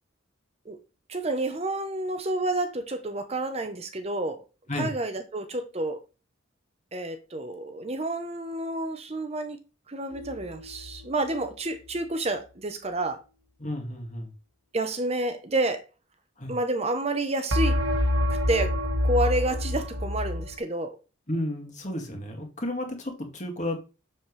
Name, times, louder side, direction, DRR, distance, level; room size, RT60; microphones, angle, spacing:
voice 1, 1.1-4.4 4.7-6.0 6.9-9.6 9.9-13.2 14.7-15.8 16.5-17.8 18.3-18.8 19.0-21.0, right 2 dB, 30° right, 0.8 m, -29 dB
sound 1, 10.1-11.0 17.5-20.5, left 1 dB, 75° right, 1.4 m, -27 dB
voice 2, 13.6-14.3 16.4-16.6 21.3-23.8, left 1 dB, 35° left, 2.1 m, -32 dB
7.3 x 7.2 x 3.2 m
head